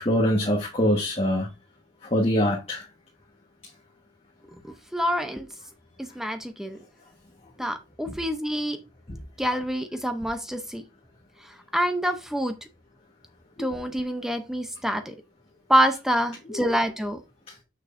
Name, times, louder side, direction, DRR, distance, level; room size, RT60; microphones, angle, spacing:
voice 1, 0.0-1.5 2.0-2.8 9.1-9.2 16.4-16.8, equal, 30° left, 1.3 m, -24 dB
voice 2, 4.9-5.5 6.2-6.8 7.6-8.8 9.4-10.8 11.7-12.5 13.6-15.1 15.7-17.2, equal, ahead, 0.5 m, -26 dB
7.0 x 6.2 x 2.5 m
head